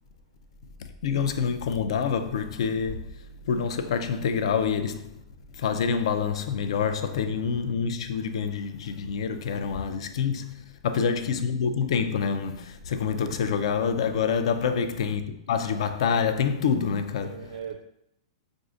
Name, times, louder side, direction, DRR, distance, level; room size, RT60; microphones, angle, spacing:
voice 1, 1.0-3.1 3.4-5.2 5.6-17.4, left 6 dB, 65° left, 0.4 m, -27 dB
voice 2, 10.9-11.4 14.6-14.9 17.2-17.8, right 7 dB, 65° right, 0.3 m, -39 dB
6.1 x 2.5 x 2.5 m
hypercardioid pair, 160°, 3 cm